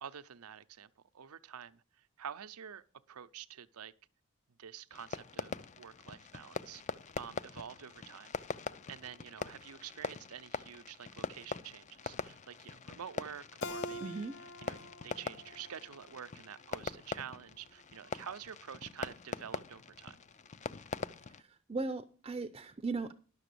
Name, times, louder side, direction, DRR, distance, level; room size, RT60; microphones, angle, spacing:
voice 1, 0.0-3.9 4.6-6.8 7.2-8.4 8.9-14.3 14.6-20.2, right 8 dB, 85° right, 0.6 m, -48 dB
Fireworks, 4.9-21.4, left 5 dB, 35° left, 0.4 m, -43 dB
Keyboard (musical), 13.6-16.8, left 1 dB, 60° left, 0.8 m, -47 dB
voice 2, 14.0-14.4 21.4-23.1, right 3 dB, 25° right, 0.5 m, -38 dB
11.0 x 6.8 x 6.8 m
head